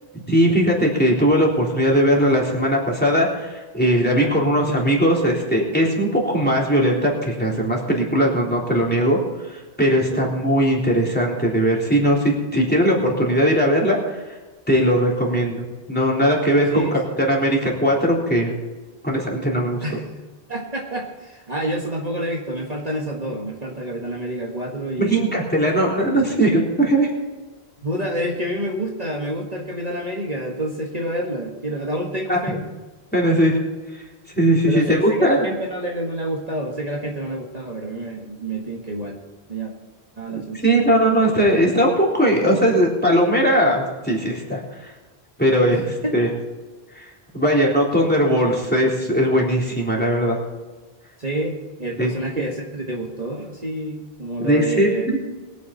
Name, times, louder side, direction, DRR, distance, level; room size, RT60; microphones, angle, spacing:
voice 1, 0.3-14.4 14.7-17.0 17.3-18.5 19.0-19.8 25.0-27.1 32.3-32.4 33.1-33.6 34.3-35.4 40.3-44.9 45.4-45.8 46.1-46.3 47.0-50.4 52.0-52.1 54.4-54.9, equal, 10° left, -3 dB, 3.6 m, -19 dB
voice 2, 4.0-4.4 10.1-10.3 16.7-17.0 19.8-20.1 20.5-25.3 25.9-26.2 27.8-32.6 34.7-39.2 39.5-39.7 40.2-41.0 45.7-46.3 47.4-47.5 51.2-55.3, right 1 dB, 40° right, -1 dB, 1.8 m, -28 dB
22.5 x 9.4 x 4.1 m, 1.2 s
omnidirectional pair, 1.1 m